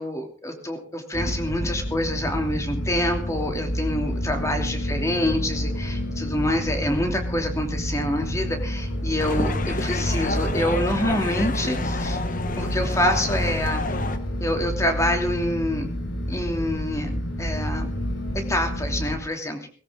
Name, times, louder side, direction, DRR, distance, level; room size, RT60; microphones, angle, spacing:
voice 1, 0.0-12.2 12.6-13.9 14.4-15.9 16.3-17.1 17.4-17.9 18.3-19.6, left 1 dB, 15° left, 4 dB, 2.8 m, -26 dB
sound 1, 1.1-19.2, equal, 70° left, 4.6 m, -29 dB
sound 2, 9.2-14.2, left 2 dB, 40° left, 1.2 m, -29 dB
19.0 x 16.0 x 3.8 m, 0.36 s
head